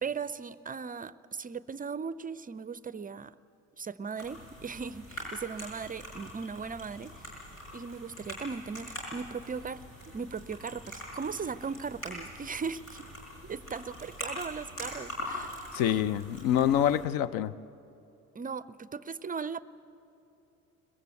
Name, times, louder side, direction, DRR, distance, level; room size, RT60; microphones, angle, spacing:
voice 1, 0.0-3.3 3.8-7.4 7.7-13.1 13.4-15.8 18.3-19.6, right 5 dB, 20° right, 17 dB, 0.5 m, -38 dB
sound 1, 4.2-17.0, left 1 dB, 90° left, 5.3 m, -43 dB
voice 2, 15.7-17.5, left 10 dB, 60° left, 18 dB, 0.7 m, -26 dB
22.5 x 21.0 x 8.1 m, 2.9 s
figure-of-eight pair, 50°, 40 cm